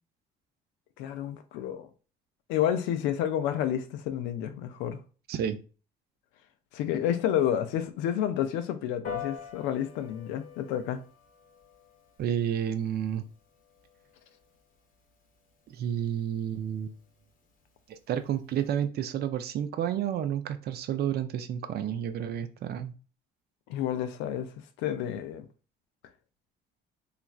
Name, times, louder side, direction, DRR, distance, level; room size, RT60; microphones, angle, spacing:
voice 1, 1.0-1.9 2.5-5.0 6.7-11.0 23.7-25.5, left 10 dB, 80° left, 0.4 m, -30 dB
Piano, 9.0-18.8, left 7 dB, 45° left, 0.8 m, -47 dB
voice 2, 12.2-13.2 15.7-16.9 17.9-22.9, right 9 dB, 55° right, 0.5 m, -30 dB
3.1 x 2.4 x 2.3 m
supercardioid pair, 75°, 19 cm